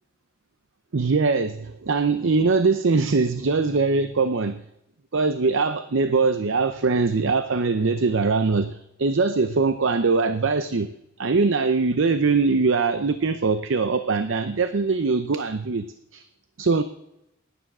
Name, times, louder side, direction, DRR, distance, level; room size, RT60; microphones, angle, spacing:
voice 1, 0.9-4.6 5.1-10.9 11.2-15.9 16.1-16.2 16.6-16.8, right 4 dB, 60° right, 10 dB, 0.7 m, -22 dB
18.0 x 10.0 x 6.1 m, 0.86 s
head